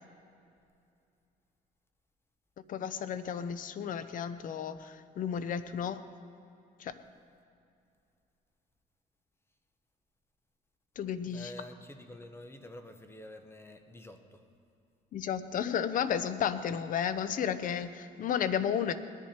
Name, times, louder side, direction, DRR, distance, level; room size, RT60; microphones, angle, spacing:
voice 1, 2.7-6.0 6.8-6.9 11.0-11.5 15.1-18.9, left 8 dB, 55° left, 12 dB, 0.7 m, -33 dB
voice 2, 11.3-14.4, left 1 dB, 15° left, 7 dB, 1.0 m, -48 dB
19.5 x 10.5 x 4.4 m, 2.5 s
cardioid pair, 110°, 17 cm